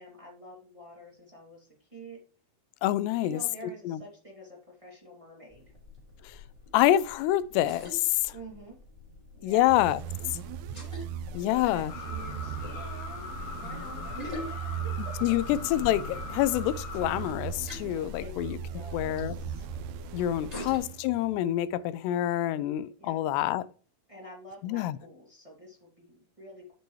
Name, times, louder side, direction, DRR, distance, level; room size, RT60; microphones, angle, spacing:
voice 1, 0.0-2.2 3.1-5.7 8.3-8.8 9.3-9.7 11.2-13.3 13.6-15.4 18.2-19.7 20.3-20.7 23.0-23.2 24.1-26.8, equal, 25° right, 0.7 m, -48 dB
voice 2, 2.8-3.4 3.9-4.0 6.7-8.3 9.4-10.0 11.3-11.9 15.2-18.6 18.9-19.3 20.1-23.7 24.6-25.0, left 13 dB, 85° left, 2.6 m, -27 dB
sound 1, 5.5-20.8, left 3 dB, 5° left, 3.3 m, -43 dB
sound 2, 9.7-21.4, right 12 dB, 85° right, 2.7 m, -39 dB
sound 3, 11.9-17.3, left 4 dB, 60° left, 2.7 m, -41 dB
11.5 x 6.8 x 3.1 m
omnidirectional pair, 4.9 m